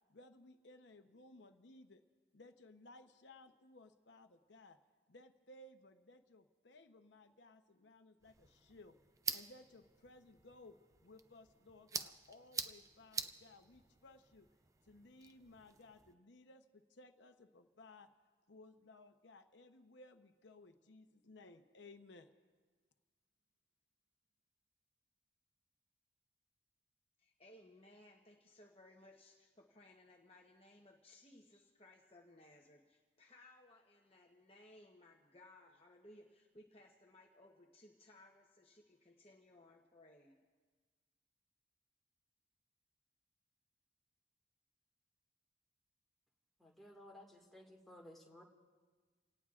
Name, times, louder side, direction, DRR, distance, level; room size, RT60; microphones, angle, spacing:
voice 1, 0.1-2.0 2.3-4.8 5.1-9.0 9.3-10.8 11.0-14.5 14.8-18.1 18.5-22.3, left 2 dB, 75° left, 7 dB, 0.8 m, -60 dB
sound 1, 8.2-16.1, right 5 dB, 15° right, 0.4 m, -47 dB
voice 2, 27.2-40.4, left 1 dB, 30° left, 0 dB, 0.9 m, -62 dB
voice 3, 46.6-48.4, left 1 dB, ahead, -2 dB, 1.8 m, -57 dB
29.0 x 18.0 x 2.5 m, 1.5 s
head